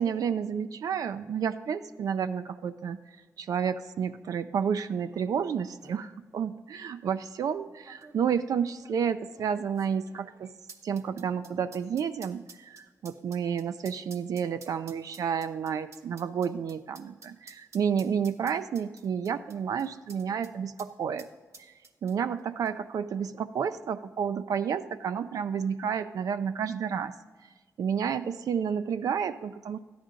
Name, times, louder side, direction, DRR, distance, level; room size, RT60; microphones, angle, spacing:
voice 1, 0.0-3.0 3.4-10.5 10.8-21.3 21.6-21.7 22.0-27.1 27.8-29.8, right 7 dB, 80° right, 10 dB, 0.4 m, -30 dB
sound 1, 5.3-5.4 5.6-6.0 6.8-6.9 7.8-20.5 20.8-20.9 21.2-22.4 22.7-22.8, right 4 dB, 55° right, 0.8 m, -52 dB
13.0 x 10.5 x 3.7 m, 1.3 s
wide cardioid pair, 130°, 6 cm